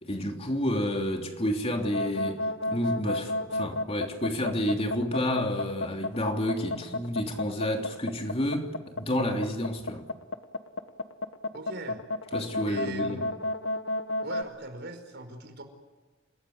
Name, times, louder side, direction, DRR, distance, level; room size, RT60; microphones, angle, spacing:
voice 1, 0.0-10.0 12.3-13.3, left 1 dB, 30° left, 3.3 m, -30 dB
sound 1, 1.8-14.4, left 2 dB, 75° left, 1.4 m, -31 dB
voice 2, 11.5-12.0 12.7-13.4 14.2-15.6, right 2 dB, 60° right, 5.3 m, -40 dB
29.5 x 20.0 x 9.6 m
head